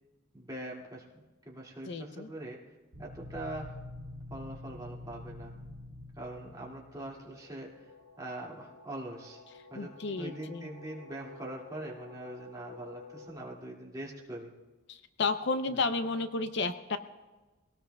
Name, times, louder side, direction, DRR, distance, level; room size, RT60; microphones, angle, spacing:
voice 1, 0.3-2.6 3.0-3.8 4.3-5.5 6.2-7.9 8.2-9.4 9.7-14.5 15.7-15.8, right 1 dB, 20° right, -3 dB, 2.2 m, -43 dB
voice 2, 1.9-2.3 9.7-10.7 14.9-17.0, left 3 dB, 55° left, 10 dB, 0.6 m, -32 dB
sound 1, 2.9-7.6, left 1 dB, 80° right, 1.3 m, -46 dB
sound 2, 7.0-13.3, left 3 dB, 30° left, 6.4 m, -52 dB
23.5 x 18.0 x 2.3 m, 1.2 s
head